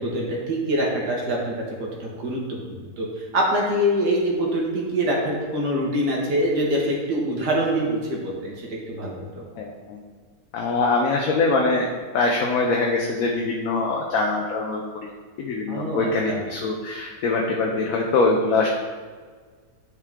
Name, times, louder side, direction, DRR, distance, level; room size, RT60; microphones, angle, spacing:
voice 1, 0.0-3.1 3.3-9.4 15.7-16.4, equal, 80° right, -2 dB, 2.0 m, -25 dB
voice 2, 9.6-10.0 10.5-15.1 15.4-18.7, left 3 dB, 65° left, 0 dB, 1.1 m, -23 dB
9.7 x 4.8 x 3.6 m, 1.5 s
omnidirectional pair, 1.7 m